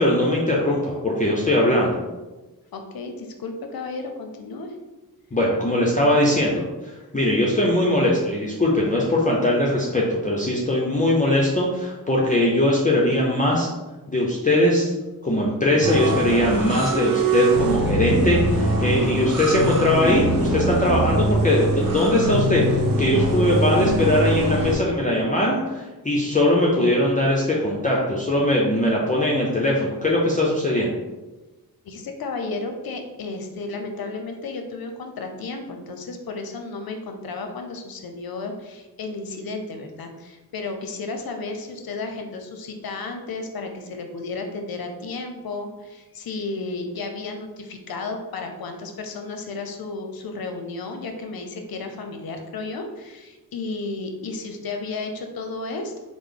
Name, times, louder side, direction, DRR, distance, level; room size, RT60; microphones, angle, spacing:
voice 1, 0.0-2.0 5.3-13.7 14.1-14.9 15.2-31.0, left 1 dB, 20° left, -4 dB, 0.6 m, -21 dB
voice 2, 2.7-4.7 31.8-55.9, left 3 dB, 65° left, 5 dB, 0.6 m, -33 dB
sound 1, 15.8-24.7, right 2 dB, 60° right, 0.8 m, -23 dB
3.1 x 2.0 x 3.7 m, 1.1 s
cardioid pair, 45°, 40 cm